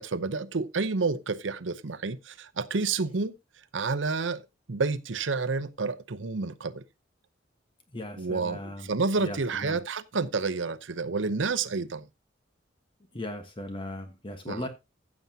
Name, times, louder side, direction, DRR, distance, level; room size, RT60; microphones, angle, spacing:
voice 1, 0.0-3.3 3.7-4.4 4.7-6.8 8.2-12.1 14.5-14.7, right 4 dB, 70° right, 0.8 m, -29 dB
voice 2, 7.9-8.9 9.2-9.8 13.1-14.7, left 1 dB, 30° left, 1.3 m, -37 dB
15.0 x 7.1 x 2.8 m
head